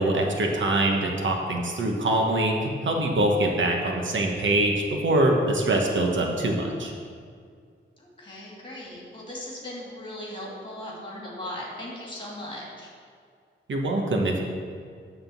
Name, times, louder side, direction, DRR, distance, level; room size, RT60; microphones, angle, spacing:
voice 1, 0.0-6.9 13.7-14.4, right 1 dB, 75° right, 1 dB, 1.1 m, -24 dB
voice 2, 8.0-12.9, left 1 dB, 25° left, -4 dB, 2.3 m, -38 dB
9.4 x 3.7 x 7.1 m, 2.1 s
wide cardioid pair, 135°, 20 cm